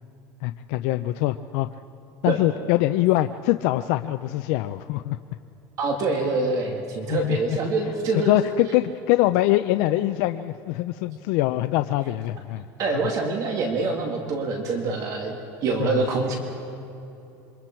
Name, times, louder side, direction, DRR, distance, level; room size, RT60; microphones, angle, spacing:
voice 1, 0.4-1.7 2.2-5.2 7.1-7.6 8.1-12.7 15.8-16.0, left 16 dB, 70° left, 9 dB, 0.5 m, -23 dB
voice 2, 5.8-8.3 12.8-15.3 15.6-16.4, right 3 dB, 40° right, 2 dB, 2.2 m, -25 dB
27.0 x 24.0 x 4.5 m, 2.8 s
cardioid pair, 160°, 9 cm